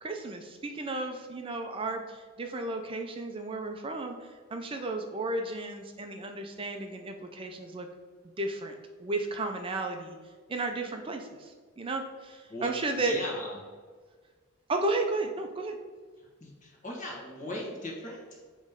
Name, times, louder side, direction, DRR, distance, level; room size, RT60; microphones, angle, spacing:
voice 1, 0.0-7.9 8.4-8.7 9.0-10.2 10.5-13.2 14.7-15.8, right 2 dB, 25° right, 4 dB, 0.4 m, -33 dB
voice 2, 12.9-13.6 16.4-18.4, left 1 dB, 35° left, -2 dB, 1.5 m, -38 dB
7.6 x 3.1 x 5.1 m, 1.5 s
head